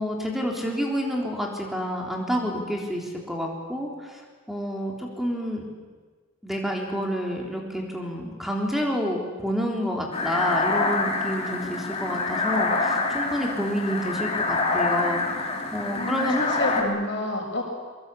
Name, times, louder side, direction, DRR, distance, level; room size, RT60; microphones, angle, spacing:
voice 1, 0.0-4.2 4.5-5.7 6.4-16.4 16.8-16.9, equal, ahead, 0 dB, 3.7 m, -29 dB
sound 1, 10.1-16.8, left 3 dB, 30° left, 2.8 m, -26 dB
voice 2, 15.9-17.6, left 2 dB, 60° left, 1 dB, 6.0 m, -29 dB
23.5 x 22.5 x 8.5 m, 1.4 s
head